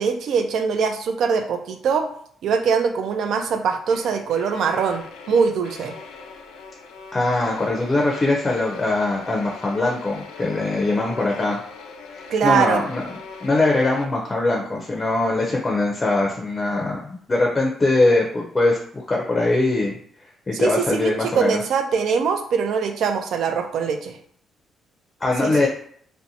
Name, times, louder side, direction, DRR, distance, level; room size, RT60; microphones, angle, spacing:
voice 1, 0.0-2.1 2.4-5.9 12.3-12.8 20.5-24.2 25.4-25.5, right 6 dB, 70° right, 6 dB, 0.4 m, -22 dB
sound 1, 3.9-14.1, left 4 dB, 90° left, 0.3 m, -40 dB
voice 2, 7.1-11.6 12.1-13.0 13.4-18.8 19.1-19.9 20.5-21.6 25.2-25.7, left 2 dB, 25° left, -1 dB, 0.5 m, -21 dB
2.5 x 2.1 x 2.7 m, 0.62 s
cardioid pair, 90°, 0 cm